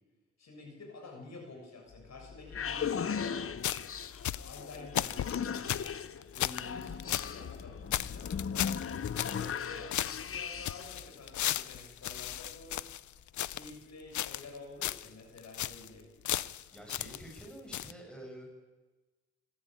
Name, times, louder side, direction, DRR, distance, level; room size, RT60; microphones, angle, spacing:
voice 1, 0.4-3.4 4.4-5.8 6.3-8.4 9.2-12.8 13.4-16.1, left 3 dB, 65° left, 2 dB, 7.1 m, -49 dB
sound 1, 1.9-11.0, left 7 dB, 50° left, 1.0 m, -38 dB
sound 2, 3.6-7.3 7.6-7.7 7.9-9.7 9.9-13.8 14.1-14.6 14.8-15.1 15.4-15.9 16.2-17.5 17.7-17.9, left 12 dB, 80° left, 0.6 m, -36 dB
voice 2, 16.7-18.5, right 1 dB, 5° left, 1 dB, 7.0 m, -48 dB
26.0 x 14.5 x 9.1 m, 1.2 s
cardioid pair, 80°, 29 cm